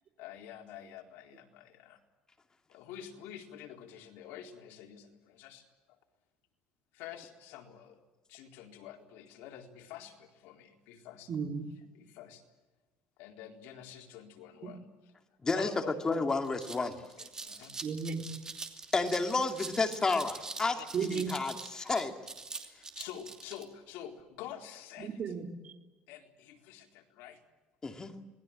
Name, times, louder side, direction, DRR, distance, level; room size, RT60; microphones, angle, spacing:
voice 1, 0.2-2.0 2.7-5.7 6.9-8.0 8.3-11.3 11.9-12.4 13.2-14.9 15.5-16.0 17.2-17.8 20.8-20.9 22.6-25.2 26.1-27.4, left 10 dB, 85° left, 4.0 m, -48 dB
voice 2, 11.3-11.7 14.6-14.7 17.8-18.2 20.9-21.3 25.0-25.7, right 6 dB, 40° right, 3.5 m, -34 dB
voice 3, 15.4-17.0 18.9-22.2 27.8-28.1, left 3 dB, 20° left, 2.4 m, -31 dB
sound 1, 16.3-23.6, right 3 dB, 20° right, 2.9 m, -44 dB
26.5 x 20.0 x 8.8 m
cardioid pair, 135°, 3 cm